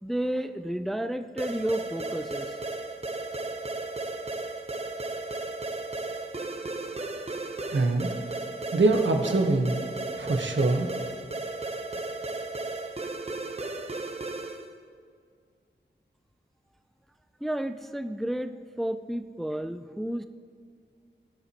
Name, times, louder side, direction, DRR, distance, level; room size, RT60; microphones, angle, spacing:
voice 1, 0.0-2.5 17.4-20.2, right 1 dB, ahead, 9 dB, 0.4 m, -31 dB
sound 1, 1.4-14.7, right 2 dB, 35° right, 0.8 m, -35 dB
voice 2, 7.7-8.1 8.7-9.8 10.1-10.9, right 2 dB, 80° right, 4 dB, 1.1 m, -24 dB
21.0 x 7.1 x 3.0 m, 2.1 s
wide cardioid pair, 65°, 19 cm